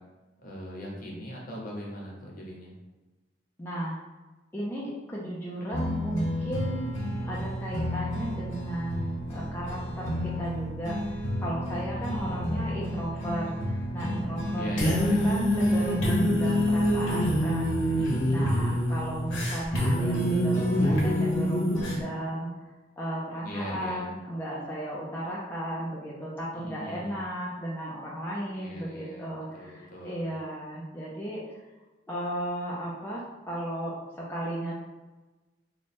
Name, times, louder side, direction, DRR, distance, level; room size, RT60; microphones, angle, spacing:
voice 1, 0.4-2.7 11.9-12.3 14.5-15.3 17.9-18.5 23.4-24.1 26.5-27.2 28.5-30.3, equal, 50° left, -3 dB, 0.9 m, -39 dB
voice 2, 3.6-4.0 4.5-6.9 7.2-22.5 23.0-31.4 32.1-34.7, right 1 dB, 10° left, -6 dB, 0.5 m, -35 dB
sound 1, 5.7-22.0, equal, 85° left, 1.0 m, -28 dB
3.1 x 2.3 x 4.2 m, 1.2 s
head